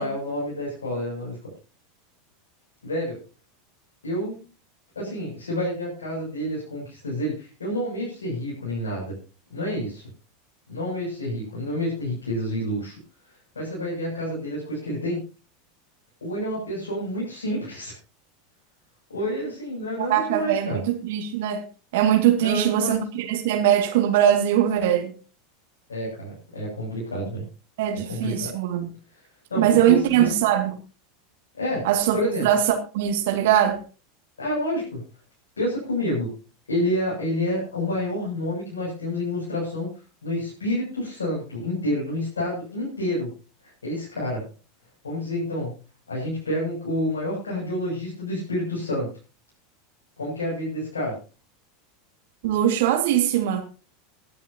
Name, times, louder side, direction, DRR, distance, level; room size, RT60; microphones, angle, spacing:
voice 1, 0.0-1.4 2.8-3.2 4.0-4.4 4.9-9.2 9.5-10.0 10.7-12.9 13.5-15.2 16.2-17.9 19.1-20.8 22.4-23.0 25.9-27.4 28.1-28.5 29.5-30.3 31.5-32.5 34.4-35.1 35.6-36.3 36.7-39.9 40.2-43.3 43.8-44.5 45.0-45.7 46.1-49.1 50.2-51.1, left 1 dB, 85° left, 7.7 m, -28 dB
voice 2, 20.0-21.6 21.9-25.1 27.8-28.9 29.6-30.7 31.8-33.8 52.4-53.6, right 11 dB, 65° right, 2.2 m, -21 dB
20.0 x 12.0 x 2.9 m
hypercardioid pair, 85°, 0 cm